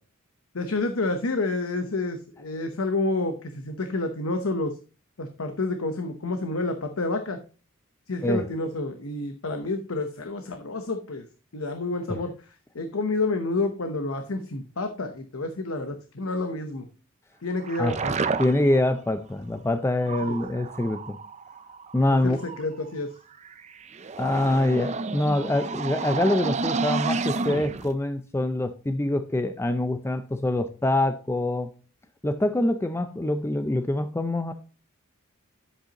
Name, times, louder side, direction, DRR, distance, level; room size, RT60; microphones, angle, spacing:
voice 1, 0.5-4.8 5.2-7.4 8.1-11.2 11.5-12.3 12.7-16.9 17.4-18.1 20.2-20.4 22.2-23.1, left 2 dB, 75° left, 6 dB, 0.9 m, -29 dB
sound 1, 17.6-18.8 20.0-22.9 23.4-27.9, right 4 dB, 35° right, 0.6 m, -31 dB
voice 2, 18.4-21.2 21.9-22.4 24.2-31.7 32.2-34.5, left 1 dB, 10° left, 8 dB, 0.4 m, -25 dB
10.5 x 8.2 x 2.9 m, 0.36 s
head